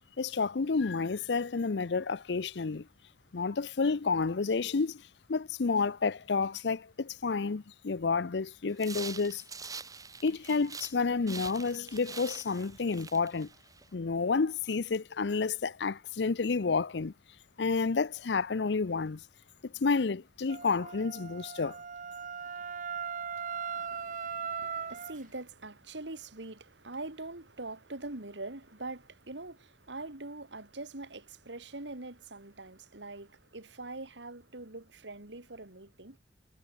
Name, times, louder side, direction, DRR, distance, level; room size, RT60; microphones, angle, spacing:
voice 1, 0.2-2.9 3.3-5.0 5.3-9.4 10.2-13.5 13.9-17.1 17.6-19.2 19.6-21.8, left 4 dB, 75° left, 0.6 m, -30 dB
sound 1, 8.7-11.0 11.3-13.9, right 5 dB, 20° right, 1.7 m, -45 dB
Wind instrument woodwind instrument, 20.5-25.2, right 6 dB, 45° right, 0.8 m, -38 dB
voice 2, 23.7-36.2, right 2 dB, 85° right, 2.7 m, -43 dB
head